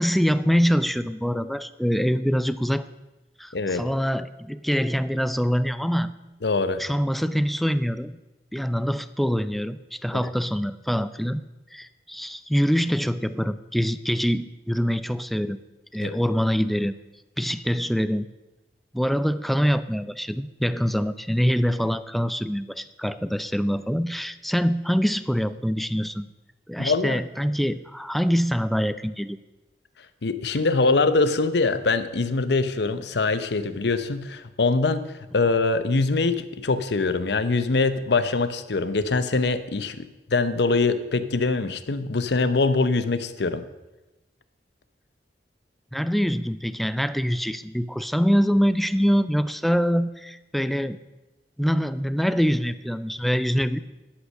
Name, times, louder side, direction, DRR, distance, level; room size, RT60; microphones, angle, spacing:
voice 1, 0.0-2.9 3.4-6.1 6.8-8.2 8.5-11.4 11.7-15.6 15.9-16.9 17.4-18.3 18.9-26.3 26.7-29.4 45.9-51.0 51.6-53.8, equal, ahead, 14 dB, 0.4 m, -24 dB
voice 2, 3.5-3.8 6.4-6.8 16.0-16.2 26.8-27.2 30.2-43.6, left 3 dB, 70° left, 12 dB, 0.8 m, -23 dB
11.5 x 8.2 x 6.5 m, 1.0 s
head